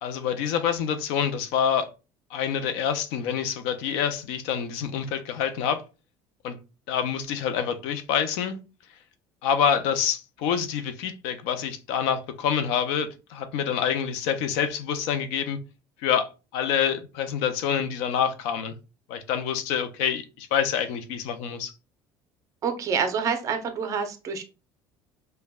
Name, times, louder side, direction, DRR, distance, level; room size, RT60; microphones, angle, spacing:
voice 1, 0.0-1.9 2.3-5.8 6.4-6.6 6.9-8.6 9.4-15.6 16.0-18.7 19.1-21.7, left 8 dB, 85° left, 0.5 m, -27 dB
voice 2, 22.6-24.4, right 6 dB, 35° right, 0.6 m, -27 dB
5.3 x 2.2 x 2.3 m
cardioid pair, 155°, 10 cm